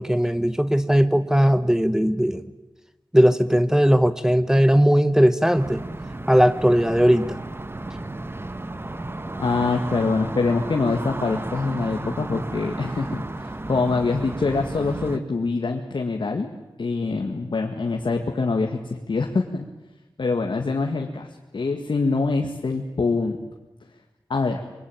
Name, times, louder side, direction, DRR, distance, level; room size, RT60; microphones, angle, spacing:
voice 1, 0.0-2.4 3.1-5.8 6.3-7.4, equal, 5° right, 12 dB, 1.0 m, -18 dB
sound 1, 5.5-15.2, right 2 dB, 30° right, 1.3 m, -33 dB
voice 2, 9.4-16.5 16.8-19.7 20.2-21.3 21.5-23.4 24.3-24.6, left 3 dB, 75° left, 2 dB, 1.9 m, -24 dB
25.0 x 23.5 x 9.1 m, 1.1 s
wide cardioid pair, 80°, 8 cm